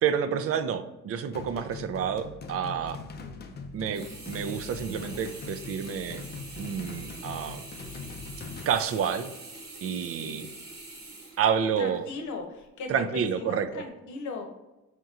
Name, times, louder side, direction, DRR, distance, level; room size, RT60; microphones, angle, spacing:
voice 1, 0.0-3.0 3.7-6.2 6.6-7.6 8.7-9.3 9.8-10.5 11.4-12.0 12.9-13.8, right 7 dB, 50° right, 10 dB, 0.4 m, -29 dB
sound 1, 1.3-8.7, left 4 dB, 35° left, 0.4 m, -42 dB
Sink (filling or washing), 3.9-12.1 12.6-12.7, right 2 dB, 35° right, 1.0 m, -45 dB
voice 2, 10.0-10.5 11.8-14.4, left 4 dB, 70° left, 3 dB, 0.8 m, -39 dB
4.3 x 2.9 x 2.4 m, 1.0 s
cardioid pair, 90°, 30 cm